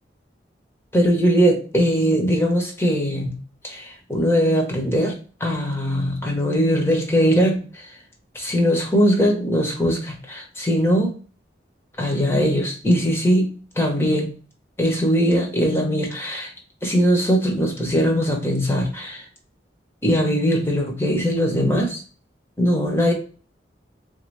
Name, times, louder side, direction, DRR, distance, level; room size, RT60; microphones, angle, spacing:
voice 1, 0.9-3.4 3.6-5.1 5.4-7.9 8.3-11.1 12.0-13.5 13.7-14.3 14.8-16.5 16.8-19.3 20.0-22.0 22.6-23.1, equal, 15° left, 0 dB, 0.8 m, -20 dB
3.9 x 2.6 x 3.1 m, 0.39 s
head